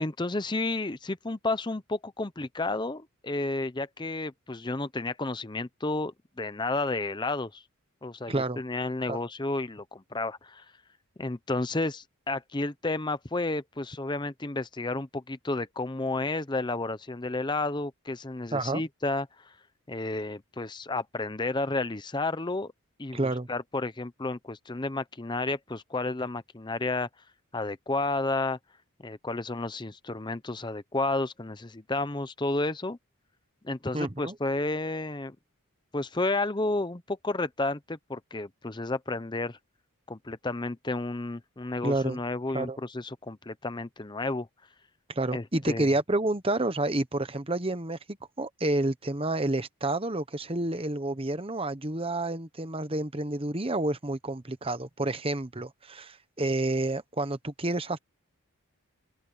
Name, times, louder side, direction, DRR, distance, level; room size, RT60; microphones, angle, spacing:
voice 1, 0.0-7.6 8.0-10.6 11.2-19.5 19.9-22.7 23.0-27.1 27.5-28.6 29.0-33.0 33.6-35.4 35.9-39.6 40.1-44.5 45.3-45.9, left 2 dB, 20° left, 0.7 m, -31 dB
voice 2, 8.3-8.6 9.1-9.2 18.5-18.8 23.1-23.5 33.9-34.3 41.8-42.2 42.5-42.8 45.1-58.0, right 2 dB, 25° right, 1.1 m, -29 dB
open air
head